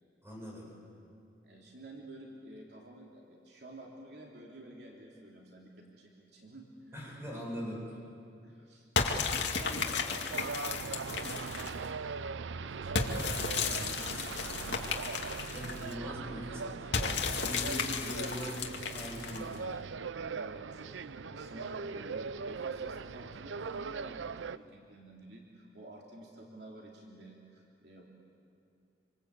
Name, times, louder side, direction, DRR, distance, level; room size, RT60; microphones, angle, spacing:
voice 1, 0.2-0.7 6.9-7.9 15.5-18.6 18.9-19.7, equal, 15° right, -3 dB, 7.5 m, -41 dB
voice 2, 1.4-6.9 8.4-8.9 9.6-14.8 20.3-28.0, right 1 dB, 60° right, -2 dB, 3.2 m, -51 dB
sound 1, 9.0-11.9 13.0-15.9 16.9-19.6, left 5 dB, 70° left, 2.3 m, -34 dB
sound 2, 10.3-24.6, right 5 dB, 85° right, 0.6 m, -40 dB
27.0 x 26.0 x 8.4 m, 2.5 s
head